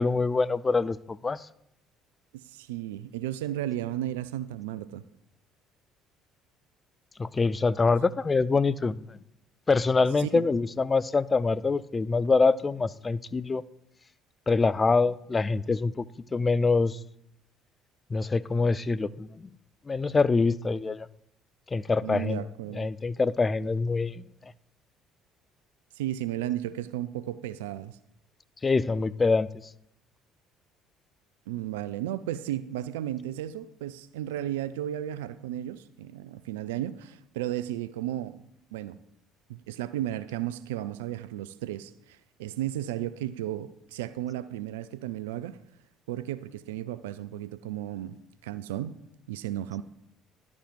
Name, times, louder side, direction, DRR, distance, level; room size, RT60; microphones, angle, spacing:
voice 1, 0.0-1.5 7.2-9.2 9.7-13.6 14.5-16.1 16.3-17.0 18.1-19.5 19.9-21.1 21.7-22.4 22.7-24.2 28.6-29.5, left 4 dB, 30° left, 0.4 m, -25 dB
voice 2, 2.3-5.0 7.8-7.9 10.2-10.5 22.0-22.9 25.9-28.0 31.5-39.0 39.5-45.6 46.1-48.2 48.4-49.0 49.3-49.8, right 12 dB, 80° right, 0.3 m, -34 dB
11.5 x 5.2 x 5.2 m
hypercardioid pair, 55°, 0 cm